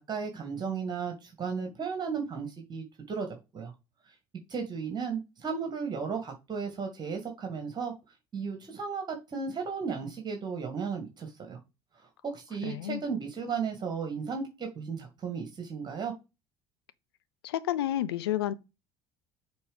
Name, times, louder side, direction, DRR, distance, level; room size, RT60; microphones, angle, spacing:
voice 1, 0.0-3.3 3.5-3.7 4.5-7.9 8.3-11.6 12.2-16.1, right 5 dB, 30° right, 2.1 m, -35 dB
voice 2, 12.6-13.0 17.4-18.5, left 13 dB, 70° left, 0.6 m, -30 dB
7.0 x 3.8 x 5.1 m
figure-of-eight pair, 60°, 13 cm